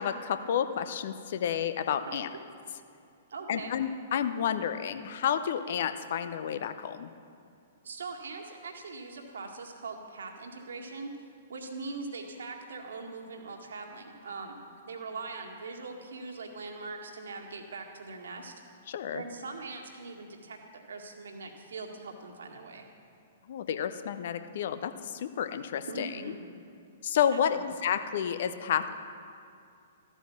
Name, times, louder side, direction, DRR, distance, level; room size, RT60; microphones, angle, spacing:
voice 1, 0.0-2.3 3.5-7.1 18.9-19.2 23.5-26.2 27.0-28.9, left 8 dB, 50° left, 11 dB, 0.9 m, -30 dB
voice 2, 2.1-2.4 3.3-3.7 7.8-18.5 19.1-22.8 25.8-26.4 27.3-27.7, right 3 dB, 65° right, 2 dB, 2.0 m, -41 dB
14.5 x 12.5 x 7.3 m, 2.4 s
figure-of-eight pair, 110°, 0 cm